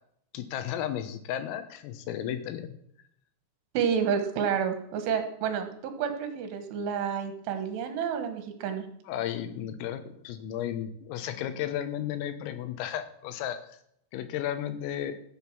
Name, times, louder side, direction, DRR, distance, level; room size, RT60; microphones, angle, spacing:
voice 1, 0.3-2.8 9.1-13.6 14.1-15.2, left 10 dB, 85° left, 10 dB, 3.8 m, -34 dB
voice 2, 3.8-8.8, right 7 dB, 75° right, 8 dB, 3.7 m, -29 dB
15.5 x 8.0 x 6.0 m, 0.71 s
omnidirectional pair, 5.9 m